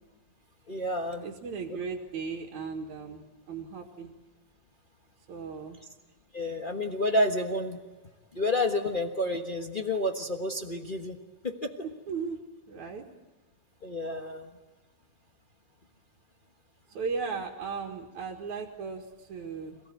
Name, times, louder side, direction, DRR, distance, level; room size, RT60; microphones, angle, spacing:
voice 1, 0.7-1.2 6.3-7.8 8.3-11.2 11.4-11.7 13.8-14.5, left 1 dB, 50° left, 3 dB, 0.5 m, -29 dB
voice 2, 1.2-4.1 5.3-5.8 11.8-12.4 12.7-13.1 16.9-19.8, right 5 dB, 80° right, -3 dB, 3.2 m, -36 dB
27.5 x 18.0 x 9.4 m, 1.2 s
omnidirectional pair, 3.4 m